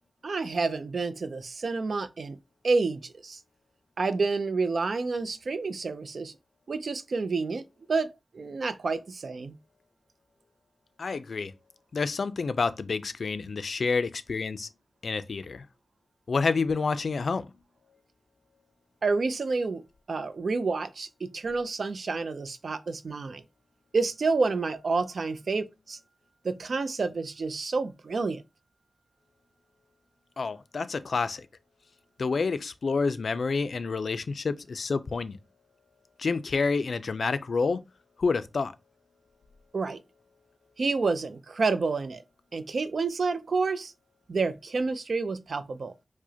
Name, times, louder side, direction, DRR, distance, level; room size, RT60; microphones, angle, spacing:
voice 1, 0.2-2.4 2.6-3.4 4.0-6.3 6.7-7.6 7.9-9.6 19.0-23.4 23.9-26.0 26.4-28.4 39.7-40.0 40.8-42.2 42.5-43.9 44.3-45.9, right 4 dB, 80° right, 0.4 m, -29 dB
voice 2, 11.0-11.5 11.9-14.7 15.0-15.7 16.3-17.5 30.4-31.5 32.2-35.4 36.2-37.8 38.2-38.7, left 4 dB, 85° left, 0.3 m, -28 dB
4.7 x 2.1 x 2.7 m
wide cardioid pair, 105°, 0 cm